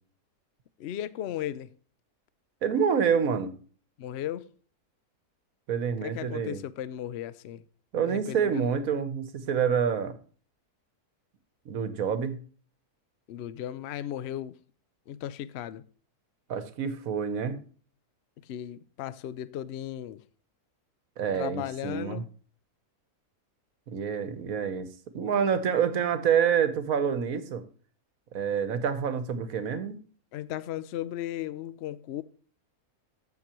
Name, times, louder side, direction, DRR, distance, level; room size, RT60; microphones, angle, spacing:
voice 1, 0.8-1.7 4.0-4.5 6.0-7.6 8.0-8.7 13.3-14.6 15.1-15.8 18.4-20.2 21.3-22.3 30.3-32.2, left 11 dB, 70° left, 0.6 m, -36 dB
voice 2, 2.6-3.5 5.7-6.6 7.9-10.2 11.6-12.4 16.5-17.6 21.2-22.2 23.9-27.6 28.3-30.0, right 7 dB, 65° right, 1.4 m, -27 dB
14.0 x 6.1 x 3.0 m
omnidirectional pair, 1.7 m